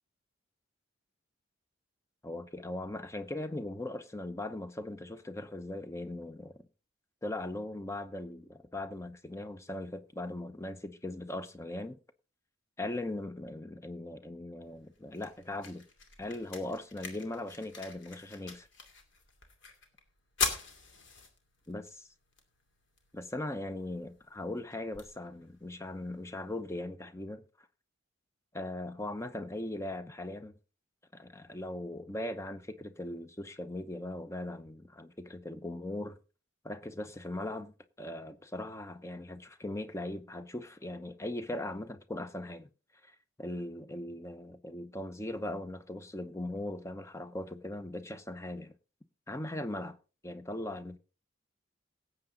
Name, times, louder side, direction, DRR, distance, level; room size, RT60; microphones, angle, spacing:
voice 1, 2.2-6.5 7.2-12.0 12.8-15.8 16.2-18.7 21.7-22.1 23.1-27.4 28.5-30.6 31.1-36.2 36.6-42.7 43.0-48.7 49.3-50.0 50.2-51.0, left 1 dB, 15° left, 0.7 m, -39 dB
sound 1, 14.6-26.6, left 4 dB, 65° left, 2.5 m, -43 dB
17.5 x 7.9 x 3.8 m
head